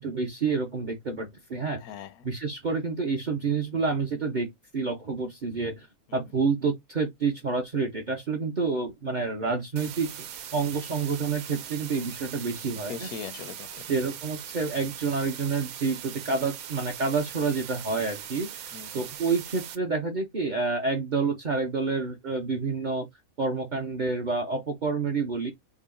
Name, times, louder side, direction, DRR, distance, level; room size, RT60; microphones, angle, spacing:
voice 1, 0.0-1.8 2.2-4.5 4.7-5.9 6.1-10.2 10.5-13.1 13.9-18.7 18.9-23.1 23.4-25.5, right 4 dB, 50° right, 0.5 m, -28 dB
voice 2, 1.8-2.3 6.1-6.2 12.7-13.9 18.7-19.1, left 7 dB, 80° left, 1.0 m, -41 dB
sound 1, 9.8-19.8, right 10 dB, 75° right, 1.1 m, -40 dB
3.7 x 2.0 x 3.6 m
omnidirectional pair, 1.6 m